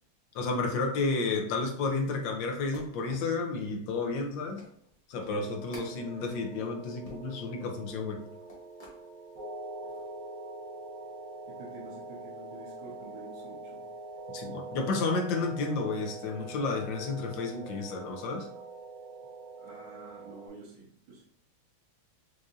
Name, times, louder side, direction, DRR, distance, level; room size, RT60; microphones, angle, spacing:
voice 1, 0.3-4.7 5.1-8.2 14.3-18.5, left 3 dB, 70° left, 2 dB, 1.3 m, -31 dB
sound 1, 2.5-9.0 9.5-10.1, left 1 dB, 30° left, 0.7 m, -53 dB
sound 2, 5.3-20.5, right 3 dB, 50° right, 1.2 m, -44 dB
voice 2, 11.5-13.9 19.6-21.2, right 3 dB, 75° right, -5 dB, 1.7 m, -49 dB
4.8 x 2.6 x 2.5 m, 0.64 s
omnidirectional pair, 2.3 m